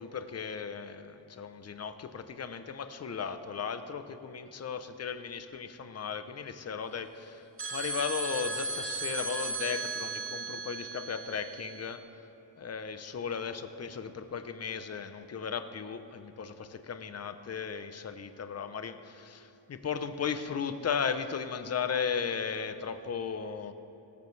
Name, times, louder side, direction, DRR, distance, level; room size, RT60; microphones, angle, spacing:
voice 1, 0.0-12.3 12.6-23.7, left 6 dB, 35° left, 10 dB, 0.6 m, -36 dB
sound 1, 7.6-11.9, right 3 dB, 30° right, 1.0 m, -36 dB
18.0 x 14.0 x 3.2 m, 2.9 s
wide cardioid pair, 170°, 46 cm